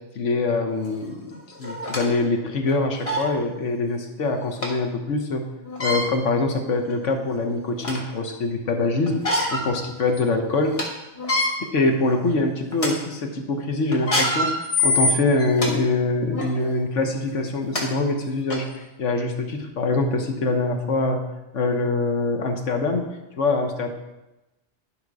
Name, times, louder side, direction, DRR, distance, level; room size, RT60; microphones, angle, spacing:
voice 1, 0.1-5.4 5.8-10.8 11.6-21.2 21.5-23.1 23.4-23.9, left 3 dB, 80° left, 4 dB, 1.4 m, -24 dB
sound 1, 0.9-1.0 1.6-2.1 2.7-2.8 3.0-3.3 4.6-4.7 5.6-6.1 6.8-6.9 7.4-8.1 9.1-9.7 10.1-10.2 10.6-10.8 11.2-11.5 12.1-12.3 12.7-12.9 13.9-15.7 16.3-16.5 17.4-17.5 17.7-17.8 18.5-18.6, left 2 dB, 30° left, 1.5 m, -24 dB
10.5 x 5.4 x 4.8 m, 0.99 s
omnidirectional pair, 1.2 m